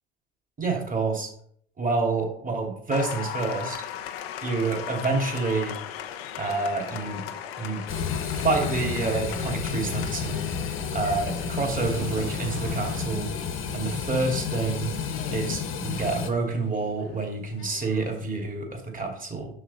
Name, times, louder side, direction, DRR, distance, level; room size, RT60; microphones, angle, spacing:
voice 1, 0.6-1.3 1.8-3.8 4.4-5.8 6.4-7.2 7.6-7.8 8.2-10.4 10.9-13.3 13.7-14.9 15.3-19.5, right 3 dB, 25° right, 1 dB, 2.7 m, -28 dB
Applause, 2.9-18.2, left 10 dB, 80° left, 0.9 m, -39 dB
sound 1, 7.9-16.3, left 6 dB, 45° left, 1.3 m, -31 dB
sound 2, 7.9-8.8 9.8-10.5 11.7-13.1, right 6 dB, 50° right, 1.3 m, -43 dB
6.5 x 6.2 x 4.1 m, 0.63 s
hypercardioid pair, 70°, 30 cm